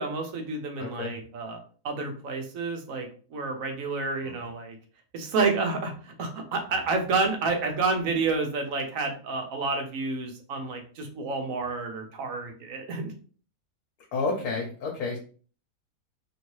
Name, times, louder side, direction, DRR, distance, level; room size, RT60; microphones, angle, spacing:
voice 1, 0.0-1.6 1.8-4.8 5.1-13.1, right 3 dB, 60° right, 3 dB, 1.0 m, -29 dB
voice 2, 0.8-1.1 4.2-4.4 14.1-15.2, left 3 dB, 70° left, 0 dB, 1.2 m, -30 dB
3.0 x 2.7 x 3.0 m, 0.40 s
omnidirectional pair, 1.7 m